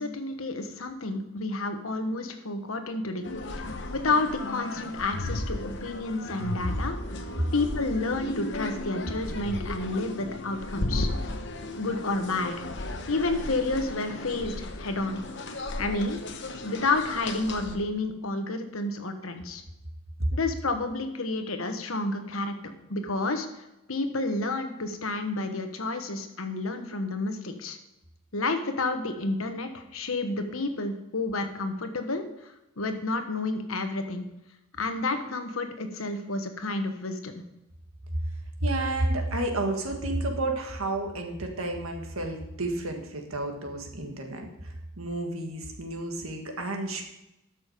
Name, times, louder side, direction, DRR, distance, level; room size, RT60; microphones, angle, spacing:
voice 1, 0.0-7.0 7.5-11.1 11.8-12.6 13.1-15.2 15.8-16.2 16.6-19.6 20.3-22.5 22.9-23.5 23.9-27.8 28.3-34.3 34.8-37.3, left 2 dB, 85° left, 7 dB, 1.3 m, -30 dB
sound 1, 3.2-17.8, left 1 dB, 60° left, 1.0 m, -35 dB
voice 2, 38.6-47.0, right 2 dB, 90° right, 3 dB, 1.8 m, -31 dB
12.5 x 6.3 x 5.0 m, 0.91 s
head